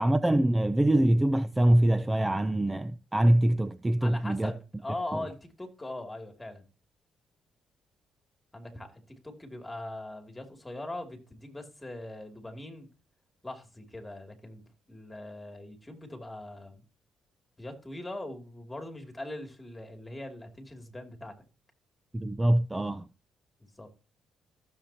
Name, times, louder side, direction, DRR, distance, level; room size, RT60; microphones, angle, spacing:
voice 1, 0.0-4.5 5.1-5.2 22.1-23.1, right 1 dB, 15° right, 0.6 m, -24 dB
voice 2, 4.0-6.6 8.5-12.9 13.4-16.8 17.6-21.4 23.6-23.9, left 1 dB, 15° left, 2.7 m, -41 dB
15.5 x 7.2 x 2.9 m
cardioid pair, 90°, 0 cm